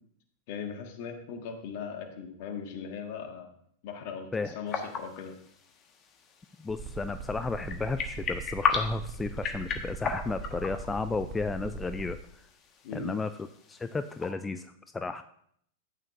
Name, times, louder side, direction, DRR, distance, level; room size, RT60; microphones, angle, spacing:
voice 1, 0.5-3.5 3.8-5.3 12.8-13.1, left 6 dB, 55° left, 4 dB, 1.7 m, -39 dB
sound 1, 4.7-14.3, left 6 dB, 35° left, 1.4 m, -37 dB
voice 2, 6.6-12.4 12.9-13.3 13.7-15.2, left 3 dB, 15° left, 10 dB, 0.4 m, -33 dB
sound 2, 6.7-12.1, right 5 dB, 50° right, 1.3 m, -40 dB
12.5 x 8.7 x 2.6 m, 0.67 s
hypercardioid pair, 100°, 0 cm